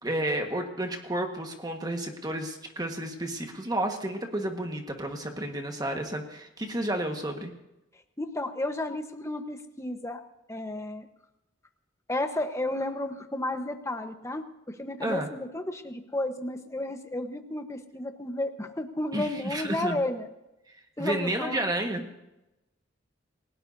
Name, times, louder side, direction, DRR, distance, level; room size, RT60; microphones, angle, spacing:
voice 1, 0.0-7.5 15.0-15.3 19.1-20.0 21.0-22.2, right 1 dB, 20° right, 3 dB, 1.5 m, -31 dB
voice 2, 8.2-10.2 10.5-11.1 12.1-20.3 21.0-21.6, left 1 dB, 15° left, 6 dB, 1.1 m, -32 dB
29.0 x 17.5 x 2.7 m, 0.93 s
head